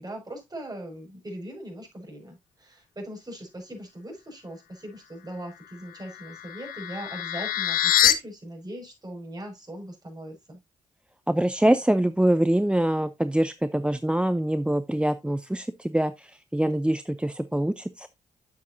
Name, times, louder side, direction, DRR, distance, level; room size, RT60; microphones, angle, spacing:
voice 1, 0.0-10.6, right 1 dB, 30° right, 6.0 m, -40 dB
sound 1, 5.9-8.1, left 11 dB, 85° left, 0.7 m, -25 dB
voice 2, 11.3-18.1, right 1 dB, 5° right, 0.6 m, -24 dB
9.6 x 7.5 x 2.7 m
supercardioid pair, 45°, 14 cm